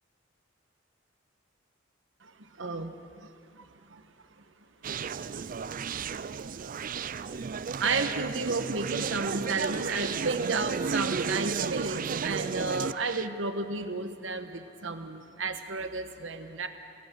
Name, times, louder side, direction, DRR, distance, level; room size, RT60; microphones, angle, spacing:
voice 1, 2.2-3.3 3.5-4.0 4.4-4.5 7.2-16.7, right 3 dB, 70° right, 8 dB, 1.4 m, -33 dB
Conversation, 4.8-13.3, right 5 dB, 45° right, 0.5 m, -33 dB
27.5 x 17.0 x 6.3 m, 2.5 s
head